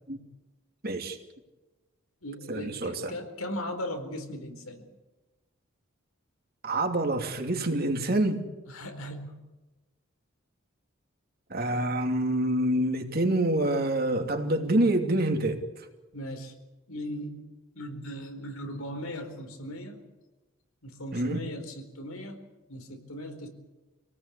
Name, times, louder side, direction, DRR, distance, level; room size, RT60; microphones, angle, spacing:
voice 1, 0.8-1.2 2.5-3.1 6.6-8.5 11.5-15.9 21.1-21.4, right 1 dB, 45° right, 4 dB, 2.8 m, -27 dB
voice 2, 2.2-4.8 8.7-9.4 16.1-16.5 16.9-17.4 17.7-20.0 20.8-22.4 22.7-23.5, equal, 85° left, 5 dB, 4.4 m, -38 dB
27.0 x 18.5 x 8.4 m, 1.1 s
head